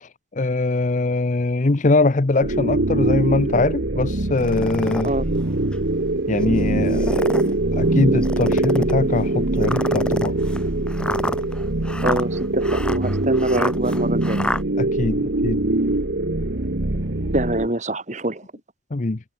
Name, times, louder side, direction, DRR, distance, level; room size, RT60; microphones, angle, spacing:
voice 1, 0.0-5.1 6.3-10.4 14.8-15.6 18.9-19.2, left 2 dB, 45° left, 0.7 m, -22 dB
sound 1, 2.4-17.7, right 2 dB, 90° right, 1.6 m, -23 dB
sound 2, 4.4-5.1 5.7-5.8 6.8-7.5 8.2-9.0 9.6-14.6, left 1 dB, 5° left, 0.9 m, -28 dB
voice 2, 12.0-14.4 17.3-18.4, right 1 dB, 45° right, 2.9 m, -25 dB
head